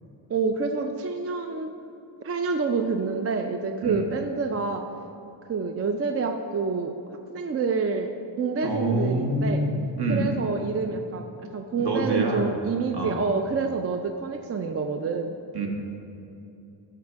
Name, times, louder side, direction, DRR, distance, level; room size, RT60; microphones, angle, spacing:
voice 1, 0.3-1.7 2.2-4.8 5.5-7.0 7.3-9.6 10.1-11.3 11.5-15.3, right 4 dB, 35° right, 5 dB, 0.4 m, -27 dB
voice 2, 8.6-10.3 11.8-12.4 12.9-13.2 15.5-15.7, right 1 dB, 55° right, 1 dB, 1.5 m, -26 dB
11.5 x 5.7 x 3.5 m, 2.8 s
cardioid pair, 105°, 47 cm